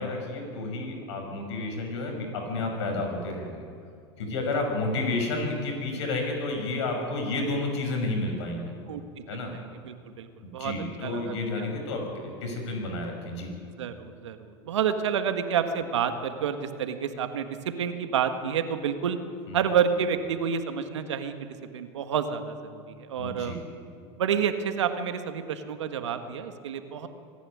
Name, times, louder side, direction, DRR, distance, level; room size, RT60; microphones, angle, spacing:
voice 1, 0.0-3.6 4.2-8.7 9.3-9.5 10.4-13.5 19.5-19.6 23.2-23.6, left 2 dB, 80° left, 3 dB, 6.1 m, -31 dB
voice 2, 9.3-10.3 10.5-10.7 11.0-11.7 13.8-19.2 19.5-23.6 24.2-27.1, right 7 dB, 85° right, 8 dB, 1.6 m, -29 dB
25.0 x 11.0 x 9.9 m, 2.3 s
hypercardioid pair, 90°, 15 cm